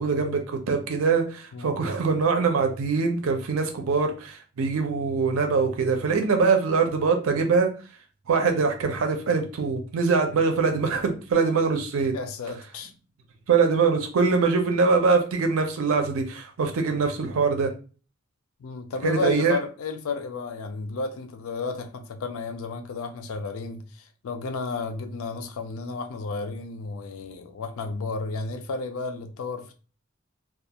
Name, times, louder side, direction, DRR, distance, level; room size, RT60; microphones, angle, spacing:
voice 1, 0.0-7.7 8.3-12.1 13.5-17.7 19.0-19.6, right 4 dB, 90° right, 0.5 m, -23 dB
voice 2, 12.1-12.9 18.6-29.7, left 4 dB, 90° left, 0.4 m, -32 dB
2.4 x 2.3 x 2.8 m
head